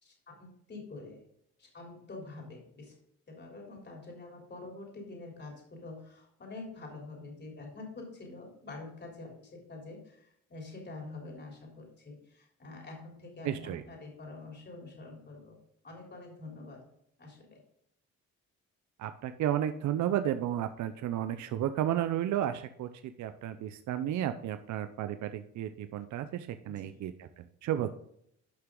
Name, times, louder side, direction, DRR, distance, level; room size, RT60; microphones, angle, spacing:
voice 1, 0.0-1.2 1.6-2.9 3.3-15.6 15.8-16.8 17.2-17.6 26.7-27.0, left 3 dB, 35° left, -1 dB, 3.5 m, -46 dB
voice 2, 13.4-13.8 19.0-22.9 23.2-27.9, right 11 dB, 70° right, 9 dB, 0.6 m, -33 dB
11.5 x 5.8 x 3.8 m, 0.71 s
cardioid pair, 90°, 30 cm